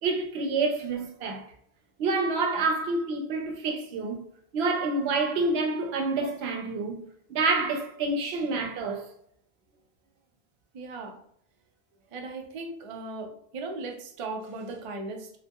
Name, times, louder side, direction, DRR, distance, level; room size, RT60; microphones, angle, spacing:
voice 1, 0.0-1.4 2.0-4.2 4.5-7.0 7.3-9.1, right 3 dB, 80° right, 0.8 m, -28 dB
voice 2, 10.7-11.2 12.1-15.4, right 3 dB, 55° right, 0.3 m, -37 dB
2.8 x 2.2 x 2.2 m
omnidirectional pair, 1.0 m